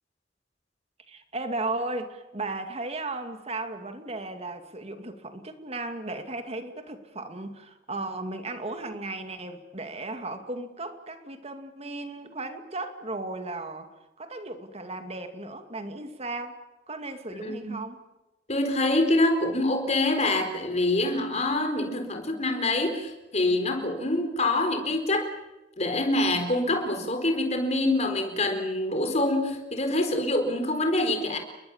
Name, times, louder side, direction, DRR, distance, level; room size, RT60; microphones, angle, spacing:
voice 1, 1.1-13.9 14.2-16.6 16.9-18.0, right 2 dB, 35° right, 7 dB, 2.4 m, -35 dB
voice 2, 17.4-17.7 18.5-25.3 25.8-31.4, left 2 dB, 40° left, 6 dB, 4.3 m, -25 dB
29.5 x 22.0 x 7.3 m, 1.0 s
head